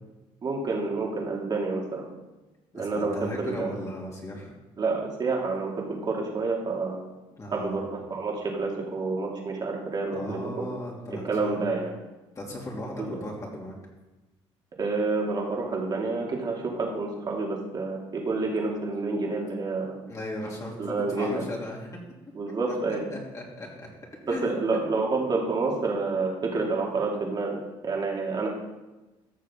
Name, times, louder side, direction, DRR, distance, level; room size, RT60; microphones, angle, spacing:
voice 1, 0.4-2.1 2.7-3.8 4.8-7.0 7.5-10.6 11.2-11.9 13.0-13.1 14.8-20.0 20.8-21.4 22.3-23.0 24.3-28.5, right 3 dB, 40° right, -1 dB, 2.4 m, -29 dB
voice 2, 2.7-4.5 7.4-7.8 10.1-11.8 12.3-13.7 20.1-21.9 22.7-22.8 23.1-23.9 24.3-24.6, left 1 dB, 30° left, -2 dB, 2.8 m, -37 dB
14.5 x 6.5 x 3.7 m, 1.1 s
cardioid pair, 95°, 11 cm